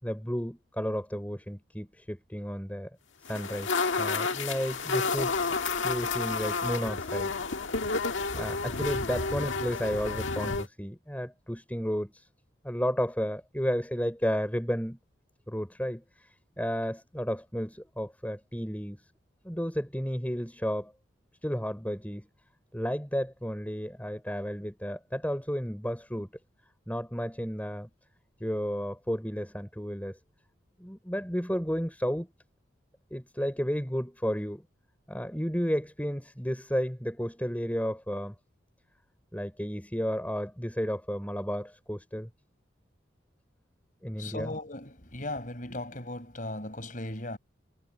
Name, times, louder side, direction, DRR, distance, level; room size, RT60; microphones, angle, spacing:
voice 1, 0.0-2.9 3.3-3.7 4.0-5.5 5.8-7.3 8.3-12.3 12.6-15.0 15.5-16.3 16.6-19.0 19.4-20.9 21.4-22.3 22.7-26.3 26.9-27.9 28.4-30.2 30.8-32.3 33.1-34.6 35.1-38.3 39.3-42.3 44.0-44.5, equal, 10° left, 6.2 m, -32 dB
sound 1, 3.3-10.7, left 4 dB, 90° left, 1.7 m, -30 dB
voice 2, 44.2-47.4, left 1 dB, 45° left, 5.7 m, -37 dB
head